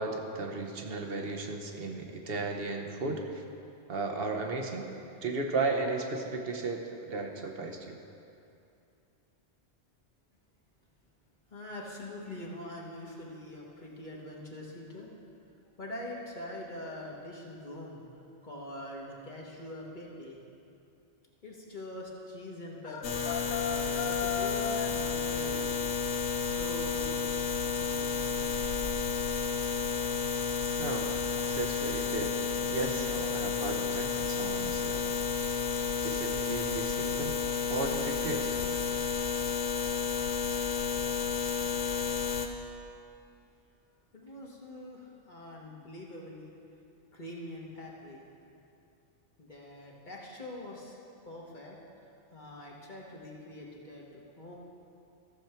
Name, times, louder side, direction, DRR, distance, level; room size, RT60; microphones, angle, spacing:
voice 1, 0.0-3.4 3.9-4.9 5.2-8.0 30.8-32.3 32.7-35.1 36.0-37.3 37.7-38.5, right 3 dB, 60° right, 3 dB, 1.1 m, -35 dB
voice 2, 11.5-15.1 15.8-18.0 18.4-20.4 21.4-25.7 26.4-27.3 44.1-46.5 47.1-48.2 49.4-51.0 51.2-51.8 52.3-54.6, left 1 dB, 45° left, -3 dB, 1.5 m, -44 dB
sound 1, 22.8-25.0, left 7 dB, 60° left, 0.6 m, -35 dB
sound 2, 23.0-42.5, left 5 dB, 85° left, 1.1 m, -31 dB
14.0 x 7.1 x 4.5 m, 2.6 s
omnidirectional pair, 1.2 m